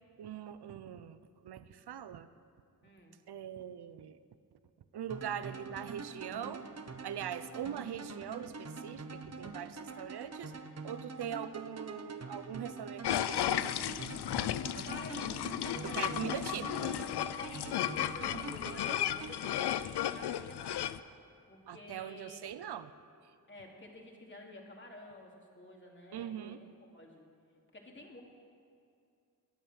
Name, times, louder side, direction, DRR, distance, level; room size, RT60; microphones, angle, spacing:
voice 1, 0.2-2.3 3.3-4.2 4.9-6.7 7.0-10.5 10.8-13.7 15.9-16.9 21.7-22.9 26.1-26.6, right 9 dB, 80° right, 13 dB, 0.7 m, -42 dB
voice 2, 2.8-3.2 14.7-16.3 17.4-21.0 21.5-22.4 23.5-27.2 27.7-28.2, left 1 dB, 30° left, -1 dB, 2.9 m, -50 dB
sound 1, 5.1-20.2, right 4 dB, 40° right, 1.1 m, -45 dB
sound 2, 13.0-21.0, left 11 dB, 85° left, 0.5 m, -34 dB
22.0 x 9.0 x 6.5 m, 2.4 s
cardioid pair, 70°, 39 cm